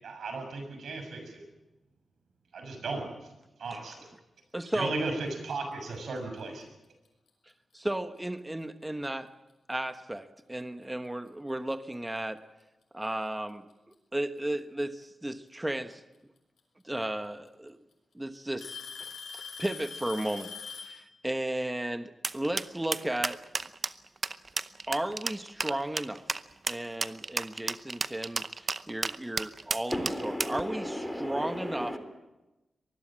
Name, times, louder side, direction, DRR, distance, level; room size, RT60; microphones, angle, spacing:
voice 1, 0.0-1.4 2.5-3.0 3.6-4.1 4.7-6.6, right 3 dB, 80° right, 5 dB, 6.8 m, -35 dB
voice 2, 4.5-4.9 7.7-9.3 9.7-12.4 12.9-13.7 14.1-16.0 16.8-17.8 18.1-20.5 20.8-23.4 24.9-26.2 26.7-32.0, right 1 dB, 10° right, 10 dB, 1.1 m, -34 dB
Alarm / Tick-tock, 7.0-7.3 8.2-8.3 9.0-9.1 10.8-10.9 12.2-12.3 13.5-13.9 15.7-15.8 17.0-17.1 17.5-17.9 18.6-21.0, left 5 dB, 80° left, 6.2 m, -42 dB
sound 1, 22.2-30.6, right 4 dB, 40° right, 0.8 m, -32 dB
voice 3, 29.9-32.0, equal, 5° left, 7 dB, 3.9 m, -34 dB
24.5 x 20.0 x 7.5 m, 1.0 s
wide cardioid pair, 125°, 0 cm